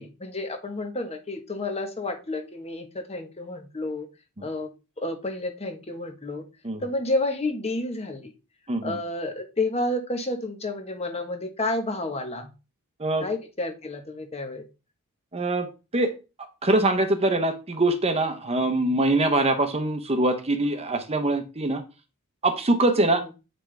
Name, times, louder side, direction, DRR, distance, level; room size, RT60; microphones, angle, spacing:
voice 1, 0.0-4.1 4.4-4.7 5.0-6.4 6.8-8.3 8.8-12.5 13.2-14.6 23.0-23.1, left 2 dB, 30° left, 6 dB, 1.3 m, -30 dB
voice 2, 8.7-9.0 13.0-13.3 15.3-16.1 16.4-21.8 22.4-23.2, right 2 dB, 30° right, 7 dB, 1.0 m, -23 dB
8.8 x 5.9 x 3.4 m, 0.30 s
head